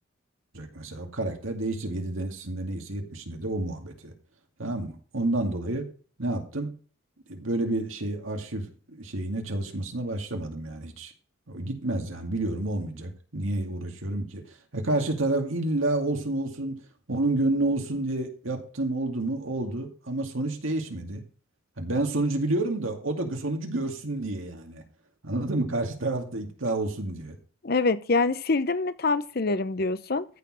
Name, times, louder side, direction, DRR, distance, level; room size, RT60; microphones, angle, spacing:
voice 1, 0.5-4.1 4.6-5.8 6.2-6.7 7.3-11.1 11.5-14.4 14.7-16.8 17.1-21.2 21.8-24.8 25.2-27.4, right 2 dB, 80° right, 2.2 m, -29 dB
voice 2, 27.6-30.3, left 3 dB, 50° left, 0.7 m, -25 dB
14.0 x 4.8 x 6.2 m
head